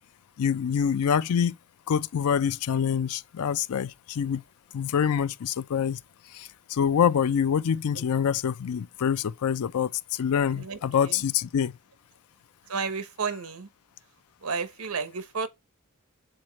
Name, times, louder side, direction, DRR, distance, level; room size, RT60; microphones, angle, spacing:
voice 1, 0.4-1.6 1.9-4.4 4.7-6.0 6.3-11.7, left 8 dB, 75° left, 0.4 m, -26 dB
voice 2, 10.5-11.2 12.7-13.7 14.4-15.5, right 5 dB, 75° right, 0.9 m, -32 dB
7.8 x 3.9 x 4.4 m
head